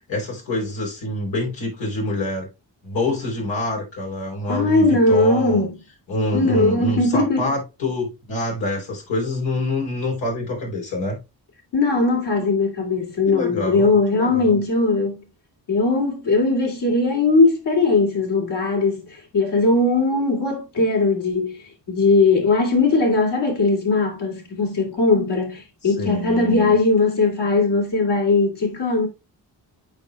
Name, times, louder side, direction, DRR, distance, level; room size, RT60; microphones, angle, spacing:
voice 1, 0.1-2.5 2.8-5.7 6.1-11.2 13.3-14.5 25.8-26.7, left 2 dB, 85° left, 3.6 m, -26 dB
voice 2, 4.5-5.8 6.3-7.5 11.7-15.2 15.7-21.6 21.9-29.1, left 3 dB, 65° left, 2.9 m, -19 dB
8.7 x 5.7 x 2.3 m
supercardioid pair, 50°, 44 cm